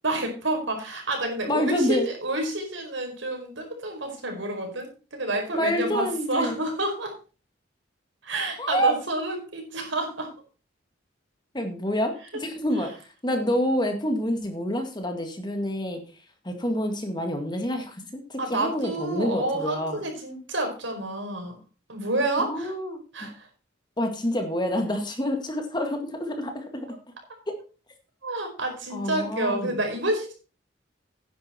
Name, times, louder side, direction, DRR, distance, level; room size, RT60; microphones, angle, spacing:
voice 1, 0.0-7.1 8.2-10.3 18.4-21.6 21.9-22.7 23.1-23.5 26.9-27.0 28.2-30.3, right 2 dB, 75° right, 3 dB, 4.6 m, -29 dB
voice 2, 1.4-2.1 5.5-6.6 8.6-9.0 11.5-12.1 12.4-12.9 13.2-16.0 16.4-20.0 22.4-23.3 24.0-26.9 27.5-27.6 28.9-29.8, equal, 20° left, 5 dB, 1.9 m, -27 dB
10.5 x 10.0 x 4.4 m, 0.34 s
head